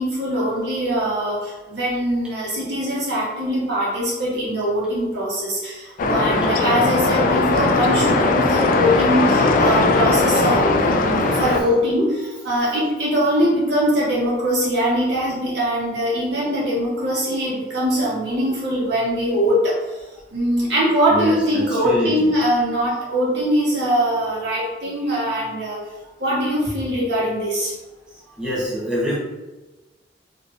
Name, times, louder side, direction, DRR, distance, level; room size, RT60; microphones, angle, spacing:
voice 1, 0.0-20.0 20.3-25.8 26.2-27.7, equal, 70° right, -7 dB, 1.3 m, -22 dB
sound 1, 6.0-11.6, left 3 dB, 50° left, 0.4 m, -18 dB
voice 2, 21.1-22.3 28.4-29.2, equal, 5° right, -8 dB, 0.8 m, -26 dB
3.5 x 2.8 x 2.5 m, 1.1 s
head